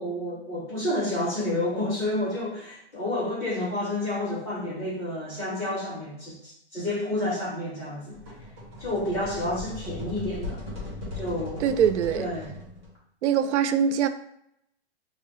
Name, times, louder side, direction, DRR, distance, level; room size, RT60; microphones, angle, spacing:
voice 1, 0.0-8.2 8.8-10.6 11.1-11.7 12.1-12.5, left 1 dB, 5° left, -12 dB, 0.4 m, -30 dB
sound 1, 8.1-13.0, left 2 dB, 25° right, 1.1 m, -38 dB
voice 2, 11.6-12.3 13.2-14.1, right 8 dB, 85° right, 10 dB, 0.5 m, -23 dB
4.6 x 2.0 x 3.0 m, 0.74 s
hypercardioid pair, 165°, 34 cm